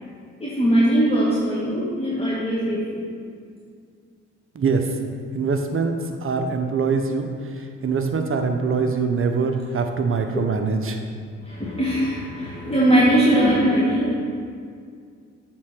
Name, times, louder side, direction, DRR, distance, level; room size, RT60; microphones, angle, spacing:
voice 1, 0.4-3.1 10.3-10.4 11.4-14.2, right 1 dB, 15° left, -7 dB, 1.6 m, -20 dB
voice 2, 4.5-4.9 5.3-5.9 6.2-7.3 7.5-11.0, right 4 dB, 35° right, 5 dB, 0.9 m, -23 dB
7.5 x 3.9 x 6.0 m, 2.2 s
hypercardioid pair, 45°, 37 cm